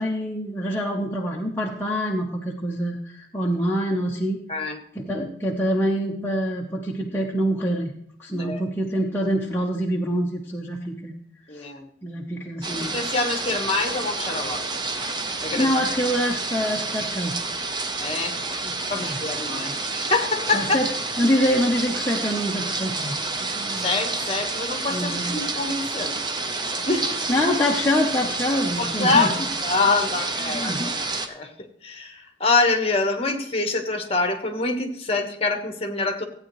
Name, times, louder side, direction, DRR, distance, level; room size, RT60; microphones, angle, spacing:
voice 1, 0.0-4.4 4.9-7.9 8.2-11.1 11.5-11.7 12.0-13.0 15.5-17.4 18.6-19.2 19.5-19.7 20.5-20.9 21.2-23.9 24.9-25.5 27.3-29.3 30.5-30.9, equal, 10° left, -2 dB, 0.8 m, -25 dB
voice 2, 11.5-11.8 12.8-14.7 15.4-15.7 18.0-18.4 18.9-20.8 23.8-26.2 26.9-27.2 28.8-30.9 31.3-31.5 31.8-36.2, left 3 dB, 30° left, 5 dB, 1.3 m, -25 dB
sound 1, 12.6-31.3, right 3 dB, 25° right, 0.7 m, -29 dB
15.0 x 8.9 x 3.1 m, 0.70 s
head